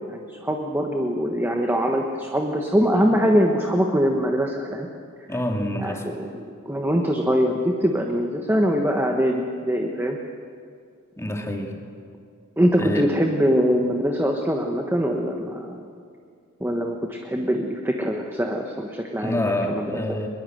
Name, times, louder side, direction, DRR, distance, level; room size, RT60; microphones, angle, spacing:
voice 1, 0.0-4.9 5.8-6.3 6.7-10.2 12.6-15.8 16.6-19.9, equal, 10° right, 2 dB, 1.3 m, -23 dB
voice 2, 5.3-6.1 11.2-11.7 12.8-13.1 19.2-20.3, left 1 dB, 15° left, 2 dB, 2.4 m, -27 dB
22.5 x 22.0 x 7.9 m, 2.3 s
head